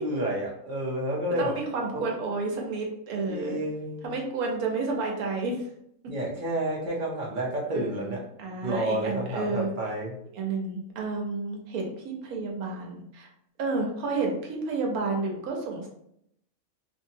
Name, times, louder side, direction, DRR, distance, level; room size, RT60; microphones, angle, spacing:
voice 1, 0.0-1.5 1.9-2.1 3.3-4.1 6.1-8.2 8.6-10.1, right 1 dB, 50° right, -3 dB, 0.6 m, -30 dB
voice 2, 1.4-3.6 4.0-5.7 7.7-9.7 10.3-13.3 13.6-15.9, right 3 dB, 85° right, 0 dB, 1.2 m, -31 dB
2.8 x 2.7 x 2.7 m, 0.74 s
omnidirectional pair, 1.5 m